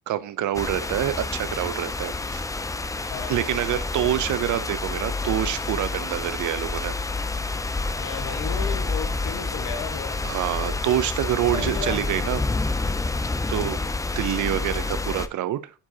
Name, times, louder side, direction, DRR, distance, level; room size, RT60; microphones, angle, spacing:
voice 1, 0.1-2.4 3.3-6.9 10.2-12.4 13.5-13.8 14.2-15.7, right 12 dB, 75° right, 0.7 m, -26 dB
sound 1, 0.5-15.3, left 3 dB, 10° left, 0.4 m, -28 dB
voice 2, 3.1-3.9 8.0-10.4 11.5-12.6 13.6-13.9, left 6 dB, 90° left, 1.4 m, -35 dB
8.7 x 4.9 x 2.8 m
cardioid pair, 90°, 30 cm